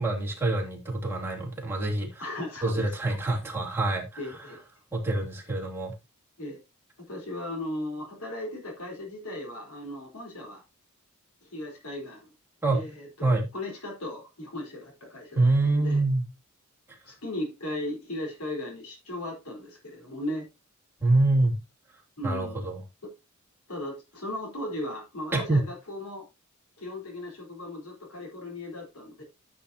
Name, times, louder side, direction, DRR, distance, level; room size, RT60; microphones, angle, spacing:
voice 1, 0.0-2.2 2.6-4.2 4.9-5.9 12.6-12.8 13.2-13.5 15.3-16.2 21.0-21.5 22.2-22.8 25.3-25.7, right 2 dB, 10° right, 3.0 m, -25 dB
voice 2, 2.2-3.2 4.2-4.6 6.4-6.6 7.1-10.6 11.4-12.3 12.7-16.0 17.0-20.5 22.2-22.7 23.7-26.2 26.8-29.2, left 1 dB, 85° left, 4.3 m, -37 dB
13.5 x 6.7 x 2.8 m
head